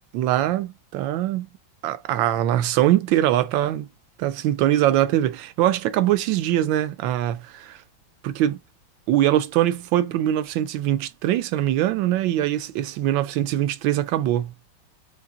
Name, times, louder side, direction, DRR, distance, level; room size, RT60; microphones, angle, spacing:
voice 1, 0.1-1.5 1.8-3.9 4.2-7.8 8.2-8.5 9.1-14.5, right 13 dB, 80° right, 1.3 m, -22 dB
4.0 x 3.3 x 3.6 m
omnidirectional pair, 2.1 m